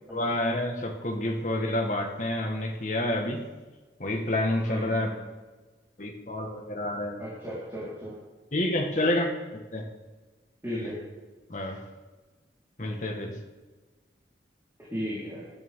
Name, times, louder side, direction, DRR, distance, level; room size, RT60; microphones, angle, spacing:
voice 1, 0.1-3.5 4.0-5.1 6.0-7.2 8.5-9.9 10.7-10.9 11.5-11.8 12.8-13.4, left 1 dB, 45° left, 2 dB, 1.6 m, -29 dB
voice 2, 4.6-5.2 7.2-8.2 10.6-11.0 14.8-15.4, equal, 15° right, -10 dB, 4.4 m, -36 dB
19.5 x 12.0 x 3.8 m, 1.3 s
head